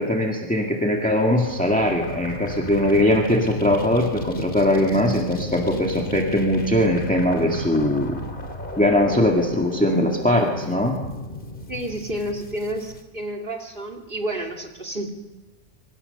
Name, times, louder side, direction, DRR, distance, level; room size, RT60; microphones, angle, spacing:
voice 1, 0.0-8.2 8.8-11.0, left 1 dB, 5° left, 0 dB, 2.0 m, -21 dB
sound 1, 1.4-13.0, left 1 dB, 45° left, 2.7 m, -33 dB
voice 2, 11.7-15.1, right 1 dB, 45° right, 5 dB, 2.7 m, -30 dB
26.0 x 25.0 x 6.8 m, 1.1 s
omnidirectional pair, 1.2 m